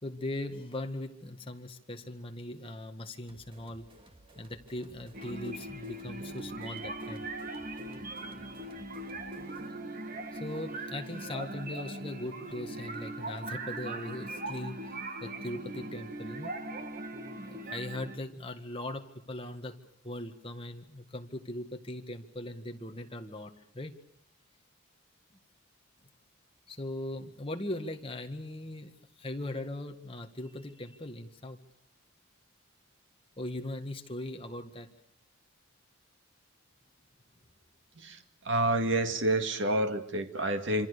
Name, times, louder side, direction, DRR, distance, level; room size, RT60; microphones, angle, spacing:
voice 1, 0.0-3.9 4.4-7.3 10.3-16.5 17.4-19.8 20.0-23.9 26.7-28.9 29.2-31.6 33.4-34.9, left 1 dB, 25° left, 5 dB, 1.8 m, -39 dB
sound 1, 3.3-9.8, right 1 dB, 25° right, 2.4 m, -57 dB
sound 2, 5.1-18.2, right 2 dB, 40° right, 2.0 m, -40 dB
voice 2, 38.0-40.9, right 1 dB, 60° right, 7 dB, 2.2 m, -29 dB
27.0 x 26.0 x 6.8 m, 0.69 s
head